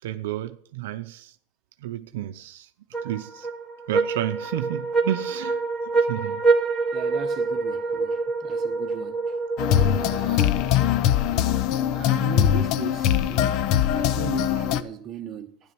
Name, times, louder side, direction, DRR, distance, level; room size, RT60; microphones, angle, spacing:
voice 1, 0.0-1.3 1.8-2.7 3.0-3.5 3.9-5.6 6.0-6.4, right 13 dB, 80° right, 0.7 m, -31 dB
sound 1, 2.9-10.5, right 3 dB, 5° left, 2.4 m, -26 dB
voice 2, 6.9-9.4 9.9-10.5 11.3-11.6 11.9-13.6 13.9-15.5, right 9 dB, 30° right, 1.2 m, -38 dB
sound 2, 9.6-14.8, left 10 dB, 50° left, 0.7 m, -22 dB
12.5 x 10.5 x 6.2 m
supercardioid pair, 130°, 0 cm